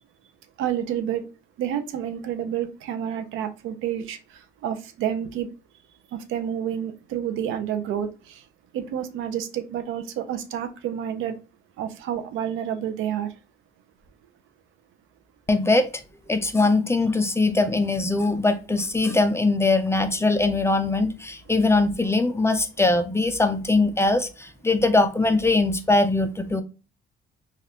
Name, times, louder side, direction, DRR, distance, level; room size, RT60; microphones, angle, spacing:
voice 1, 0.6-1.3 1.6-5.5 6.1-8.4 8.7-11.4 11.8-13.3, right 9 dB, 90° right, 0.6 m, -29 dB
voice 2, 15.5-15.9 16.3-26.6, left 2 dB, 15° left, 0.5 m, -21 dB
3.3 x 2.4 x 2.7 m
cardioid pair, 90°, 20 cm